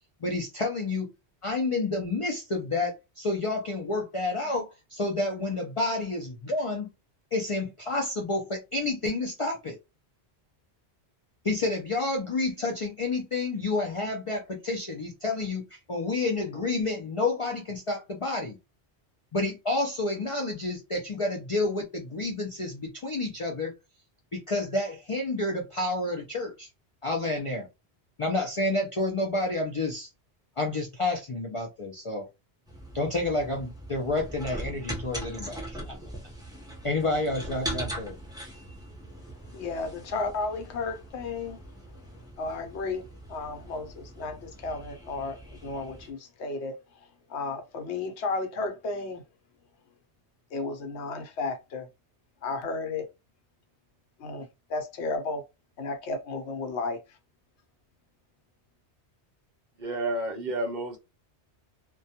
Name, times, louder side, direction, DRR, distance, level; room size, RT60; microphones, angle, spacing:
voice 1, 0.2-1.1 1.4-6.9 7.3-9.8 11.4-18.6 19.3-23.7 24.3-26.7 27.0-27.7 28.2-30.1 30.6-32.3 32.9-36.0 36.8-38.2, left 2 dB, 55° left, 0.3 m, -29 dB
sound 1, 32.6-46.1, right 1 dB, 5° right, 0.5 m, -41 dB
voice 2, 39.5-41.6 42.4-43.0 43.3-46.7 47.3-49.2 50.5-51.9 52.4-53.1 54.2-55.4 55.8-57.0, left 3 dB, 75° left, 0.9 m, -33 dB
voice 3, 59.8-61.0, right 2 dB, 50° right, 0.7 m, -30 dB
2.2 x 2.2 x 2.7 m
omnidirectional pair, 1.2 m